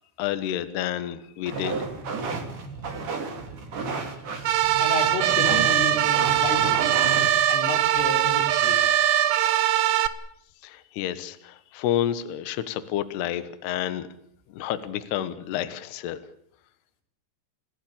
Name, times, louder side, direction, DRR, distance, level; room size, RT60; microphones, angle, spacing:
voice 1, 0.2-1.8 10.6-14.1 14.5-16.2, left 11 dB, 70° left, 11 dB, 3.0 m, -29 dB
sound 1, 1.5-7.3, right 4 dB, 45° right, 4.3 m, -33 dB
sound 2, 4.5-10.1, right 11 dB, 75° right, 2.1 m, -21 dB
voice 2, 4.8-6.9 7.5-8.8, left 3 dB, 90° left, 2 dB, 6.4 m, -31 dB
29.0 x 16.0 x 8.8 m, 0.72 s
omnidirectional pair, 5.6 m